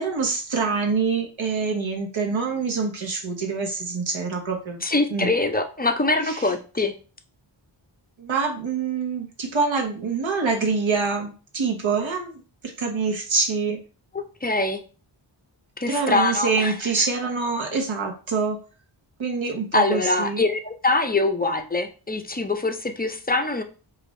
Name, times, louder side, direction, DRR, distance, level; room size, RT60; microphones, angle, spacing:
voice 1, 0.0-4.8 5.1-5.3 6.2-6.5 8.2-13.8 15.9-18.6 19.2-20.4, right 4 dB, 70° right, 2 dB, 1.0 m, -25 dB
voice 2, 4.8-6.9 14.4-14.8 15.8-17.1 19.7-23.6, left 2 dB, 20° left, 6 dB, 0.4 m, -23 dB
4.6 x 2.5 x 3.1 m, 0.35 s
wide cardioid pair, 70°, 48 cm